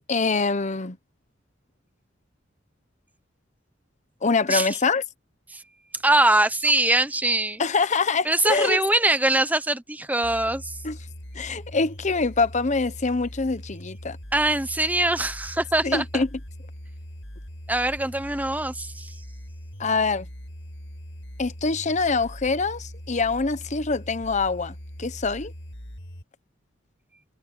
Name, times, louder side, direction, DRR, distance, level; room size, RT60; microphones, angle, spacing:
voice 1, 0.1-1.0 4.2-5.0 7.6-8.8 10.8-11.0 11.3-14.2 15.8-16.3 19.8-20.3 21.4-25.5, left 4 dB, 40° left, 0.9 m, -24 dB
voice 2, 6.0-7.6 8.2-10.8 14.3-16.2 17.7-19.1, right 2 dB, 10° right, 1.0 m, -23 dB
sound 1, 10.2-26.2, equal, 75° left, 6.3 m, -41 dB
head